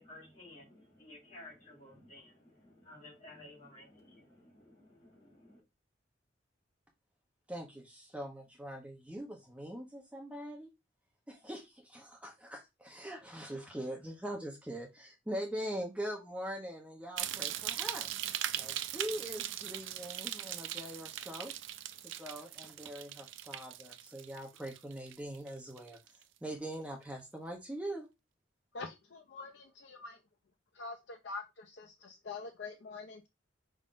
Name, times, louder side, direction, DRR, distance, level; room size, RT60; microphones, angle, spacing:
voice 1, 0.0-5.6, left 1 dB, 40° left, 2.8 m, -54 dB
voice 2, 7.5-10.7 11.3-18.1 18.6-21.5 22.0-26.0 26.4-28.1, right 1 dB, 5° right, 0.8 m, -42 dB
sound 1, 17.2-25.5 25.8-26.2 26.7-26.8, right 12 dB, 85° right, 0.4 m, -40 dB
voice 3, 28.7-30.2 30.7-33.3, left 4 dB, 65° left, 0.5 m, -45 dB
5.3 x 3.7 x 2.5 m
head